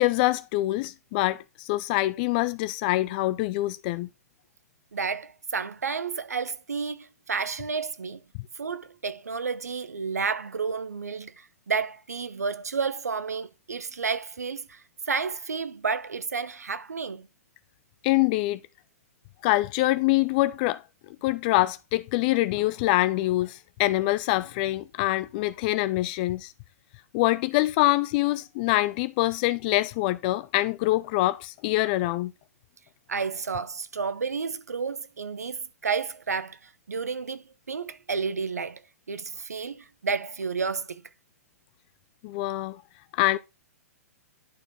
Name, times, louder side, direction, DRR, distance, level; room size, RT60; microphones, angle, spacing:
voice 1, 0.0-4.1 18.0-18.6 19.4-20.8 21.2-26.5 27.1-32.3 42.2-42.8 43.1-43.4, left 18 dB, 35° left, 0.4 m, -25 dB
voice 2, 4.9-8.2 8.6-17.3 33.1-38.8 39.1-41.0, right 5 dB, 75° right, 0.8 m, -31 dB
11.0 x 4.4 x 4.2 m
figure-of-eight pair, 115°, 9 cm